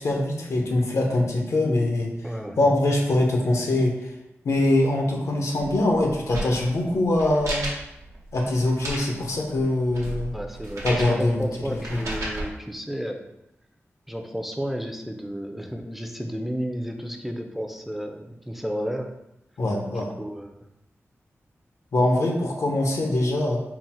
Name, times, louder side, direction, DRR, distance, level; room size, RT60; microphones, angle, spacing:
voice 1, 0.0-2.1 2.6-4.1 4.4-7.7 8.3-10.4 10.8-11.4 11.9-12.0 19.6-20.1 21.9-23.6, left 1 dB, 85° left, 1 dB, 0.7 m, -23 dB
voice 2, 2.2-2.6 10.3-13.2 14.1-19.1 19.9-20.6, equal, 5° right, 4 dB, 0.4 m, -32 dB
sound 1, 5.6-12.5, right 1 dB, 90° right, 0.8 m, -34 dB
3.9 x 2.0 x 4.2 m, 0.86 s
wide cardioid pair, 70°, 5 cm